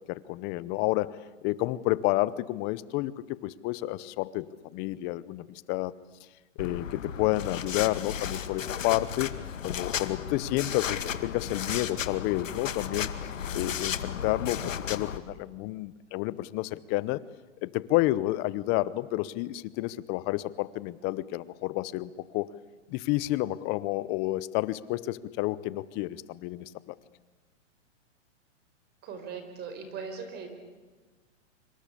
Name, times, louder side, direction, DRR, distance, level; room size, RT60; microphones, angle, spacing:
voice 1, 0.0-5.9 6.6-9.3 9.6-13.1 13.5-17.2 17.6-22.5 22.9-27.0, left 18 dB, 25° left, 19 dB, 0.8 m, -30 dB
sound 1, 6.6-15.2, left 8 dB, 90° left, 2.1 m, -34 dB
voice 2, 29.0-30.5, right 5 dB, 25° right, 7 dB, 4.8 m, -39 dB
26.5 x 25.0 x 8.5 m, 1.3 s
hypercardioid pair, 145°, 38 cm